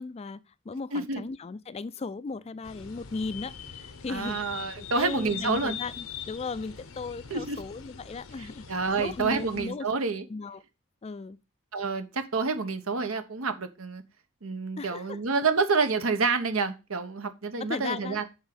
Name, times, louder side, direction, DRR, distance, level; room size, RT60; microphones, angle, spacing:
voice 1, 0.0-4.4 4.8-8.6 9.0-9.9 10.3-10.6 11.0-11.4 14.8-15.2 17.6-18.2, left 4 dB, 30° left, 0.3 m, -36 dB
voice 2, 0.9-1.2 4.1-5.8 7.3-7.6 8.4-10.2 11.7-14.0 14.4-18.2, right 4 dB, 80° right, 1.0 m, -28 dB
sound 1, 2.6-9.7, left 8 dB, 75° left, 0.8 m, -43 dB
8.0 x 3.7 x 6.0 m
head